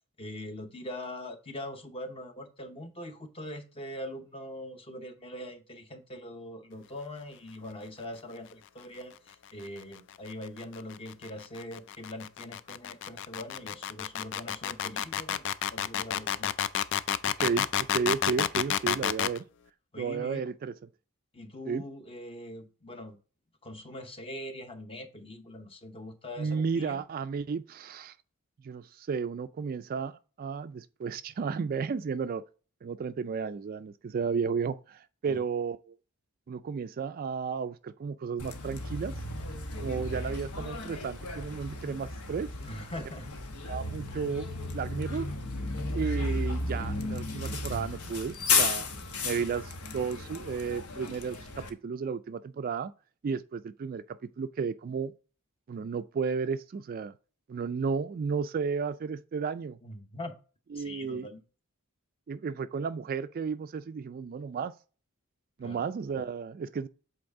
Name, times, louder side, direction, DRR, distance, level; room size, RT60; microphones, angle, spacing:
voice 1, 0.2-15.4 15.7-16.5 19.9-20.4 21.3-23.2 23.6-27.0 35.3-35.4 42.6-43.3 59.8-60.4 60.7-61.4 65.6-65.8, left 1 dB, 25° left, 0.8 m, -42 dB
sound 1, 10.1-19.4, left 10 dB, 55° left, 0.4 m, -30 dB
voice 2, 17.4-19.4 20.0-20.9 21.7-21.8 26.4-28.2 28.6-32.4 32.8-36.0 36.5-39.1 39.8-42.5 43.7-45.3 45.9-48.9 49.2-52.9 53.2-55.1 55.7-57.2 57.5-59.8 60.7-61.3 62.3-64.7 65.6-66.9, right 5 dB, 40° right, 0.3 m, -33 dB
Bus, 38.4-51.7, left 3 dB, 85° left, 1.0 m, -34 dB
7.8 x 4.0 x 3.5 m
head